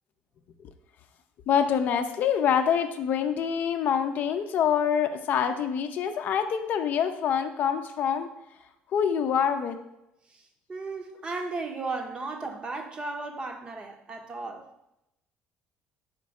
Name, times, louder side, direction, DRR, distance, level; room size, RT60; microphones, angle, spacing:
voice 1, 1.5-8.3 8.9-9.8, left 8 dB, 55° left, 0.5 m, -25 dB
voice 2, 10.7-14.7, right 3 dB, 25° right, 0.7 m, -35 dB
5.1 x 4.2 x 4.7 m
cardioid pair, 135°, 4 cm